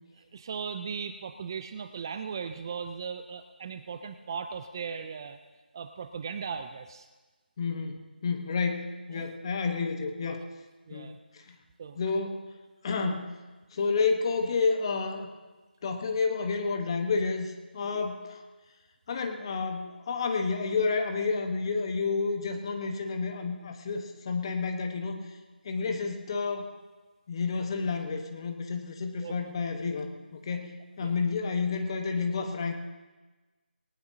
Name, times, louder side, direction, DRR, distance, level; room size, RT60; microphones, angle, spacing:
voice 1, 0.2-5.4 5.7-7.1 9.1-9.3 10.9-11.2 11.8-12.0 17.8-18.0 29.2-29.4 31.0-31.1, right 6 dB, 25° right, 9 dB, 0.4 m, -38 dB
voice 2, 7.6-10.4 10.9-11.6 11.9-12.5 12.8-13.3 13.7-15.3 15.8-18.4 19.1-25.3 25.6-26.7 27.3-32.7, left 4 dB, 30° left, 5 dB, 1.2 m, -30 dB
19.5 x 19.0 x 2.8 m, 1.2 s
figure-of-eight pair, 165°, 6 cm